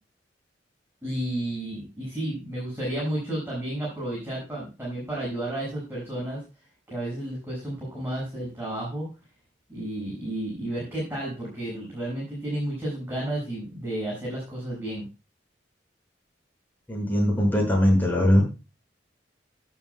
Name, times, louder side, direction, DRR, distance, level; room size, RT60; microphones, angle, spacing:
voice 1, 1.0-6.4 6.9-9.1 9.7-15.0, right 1 dB, 15° right, -5 dB, 6.6 m, -32 dB
voice 2, 16.9-18.4, left 1 dB, 10° left, -1 dB, 6.2 m, -21 dB
16.5 x 9.5 x 2.3 m, 0.29 s
head